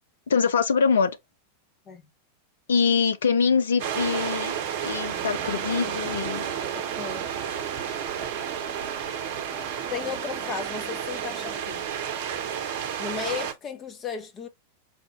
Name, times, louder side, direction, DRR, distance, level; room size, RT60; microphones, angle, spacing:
voice 1, 0.3-1.2 2.7-4.6 4.8-6.5, left 5 dB, 65° left, 0.6 m, -23 dB
sound 1, 3.8-13.5, right 8 dB, 50° right, 0.7 m, -31 dB
sound 2, 5.1-11.6, right 5 dB, 25° right, 0.9 m, -44 dB
voice 2, 6.7-7.3 9.9-11.9 13.0-14.5, left 7 dB, 25° left, 1.0 m, -35 dB
5.0 x 2.5 x 3.1 m
figure-of-eight pair, 90°, 0 cm